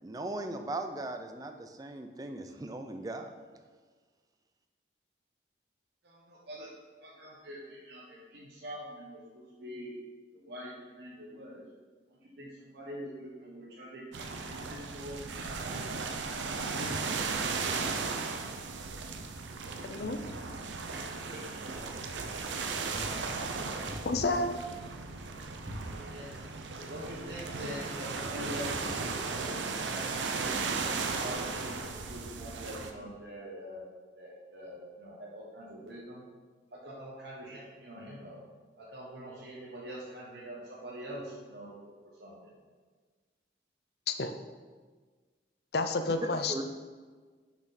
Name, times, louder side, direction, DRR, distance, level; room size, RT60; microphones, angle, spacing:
voice 1, 0.0-3.3 46.2-46.6, right 2 dB, 20° right, 6 dB, 0.4 m, -38 dB
voice 2, 6.0-6.7 7.0-9.9 10.3-11.6 12.1-15.5 15.8-16.2 16.6-17.1 21.3-21.4 26.1-26.3 26.7-30.5 31.0-33.8 34.2-36.2 36.7-38.4 38.8-41.7 42.2-42.5, equal, 60° right, -6 dB, 1.2 m, -44 dB
sound 1, 14.1-32.9, right 4 dB, 80° right, 0.6 m, -36 dB
Wind, 18.6-27.5, equal, 35° right, 1.2 m, -49 dB
voice 3, 19.8-20.2 24.0-24.5 44.1-44.3 45.7-46.5, left 3 dB, 55° left, 8 dB, 0.5 m, -30 dB
6.2 x 5.8 x 4.2 m, 1.4 s
head